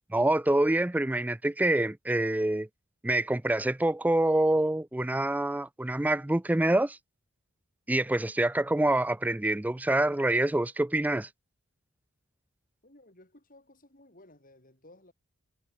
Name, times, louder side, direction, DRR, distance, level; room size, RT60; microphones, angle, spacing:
voice 1, 0.1-2.7 3.0-7.0 7.9-11.3, right 1 dB, 5° right, 0.3 m, -26 dB
voice 2, 12.8-15.1, left 1 dB, 40° left, 5.3 m, -56 dB
head